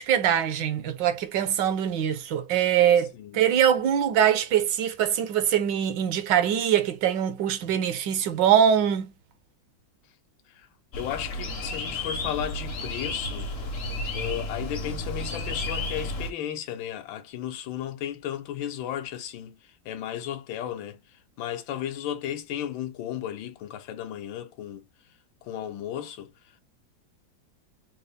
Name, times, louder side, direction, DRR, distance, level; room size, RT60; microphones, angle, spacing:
voice 1, 0.0-9.1, right 9 dB, 75° right, 1.3 m, -23 dB
sound 1, 10.9-16.3, left 2 dB, 55° left, 0.7 m, -32 dB
voice 2, 11.0-13.5 14.1-24.9 25.4-26.6, left 10 dB, 80° left, 1.4 m, -34 dB
4.1 x 2.0 x 3.4 m
omnidirectional pair, 2.1 m